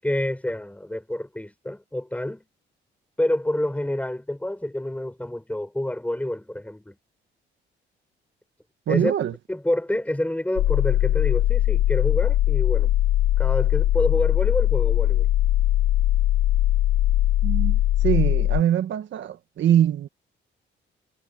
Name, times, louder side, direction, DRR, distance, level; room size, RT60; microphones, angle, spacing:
voice 1, 0.0-2.4 3.2-7.0 8.9-9.1 9.5-12.9 13.4-15.3, left 1 dB, 5° left, 6.7 m, -28 dB
voice 2, 8.9-9.3 17.4-17.8 18.0-20.1, right 10 dB, 70° right, 1.8 m, -23 dB
sound 1, 10.6-18.6, left 13 dB, 80° left, 0.8 m, -20 dB
cardioid pair, 90°, 20 cm